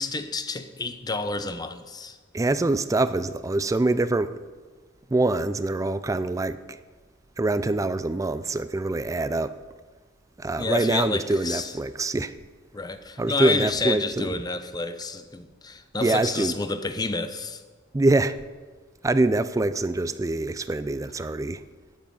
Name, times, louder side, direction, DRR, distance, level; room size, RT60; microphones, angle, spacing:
voice 1, 0.0-2.2 10.6-11.7 12.7-17.6, left 3 dB, 20° left, 0.7 m, -29 dB
voice 2, 2.3-4.3 5.1-6.6 7.4-9.5 10.4-12.3 13.2-14.3 16.0-16.5 17.9-18.3 19.0-21.6, right 2 dB, 15° right, 0.4 m, -24 dB
12.0 x 9.4 x 5.3 m
head